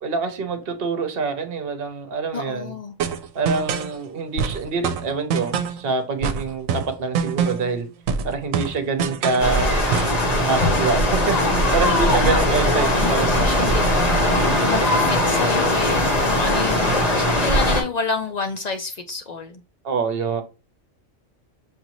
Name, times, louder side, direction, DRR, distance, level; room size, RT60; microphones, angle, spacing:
voice 1, 0.0-2.7 3.3-7.9 8.2-9.7 10.3-11.4 11.7-13.7 16.5-17.0 19.8-20.4, right 4 dB, 50° right, 0.9 m, -26 dB
voice 2, 2.3-3.0 12.1-19.6, left 4 dB, 60° left, 0.4 m, -28 dB
sound 1, 3.0-3.9 4.4-5.8 6.2-7.7 8.1-9.5 9.9-10.2, right 6 dB, 80° right, 1.0 m, -25 dB
sound 2, 9.4-17.8, left 1 dB, 30° left, 1.1 m, -20 dB
6.8 x 2.6 x 3.0 m
omnidirectional pair, 1.4 m